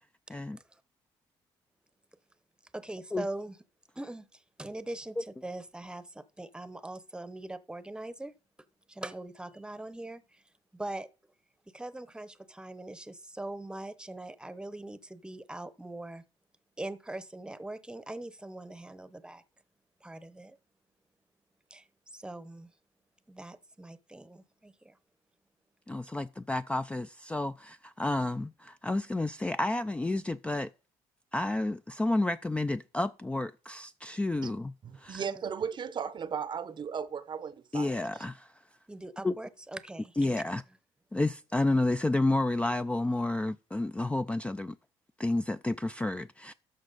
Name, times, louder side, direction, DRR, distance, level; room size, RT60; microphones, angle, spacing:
voice 1, 2.7-3.6 3.9-8.3 8.9-10.4 10.7-11.1 11.7-16.2 16.8-19.4 20.0-20.6 21.7-22.7 23.3-25.0 35.2-35.4 38.9-40.1, right 2 dB, 10° right, 0.8 m, -42 dB
voice 2, 25.9-30.7 31.3-35.3 37.7-38.5 39.2-39.3 40.2-40.6 41.1-44.8 45.2-46.5, left 2 dB, 10° left, 0.3 m, -30 dB
voice 3, 34.8-37.9, right 7 dB, 45° right, 0.7 m, -36 dB
13.0 x 4.7 x 3.9 m
cardioid pair, 85°, 11 cm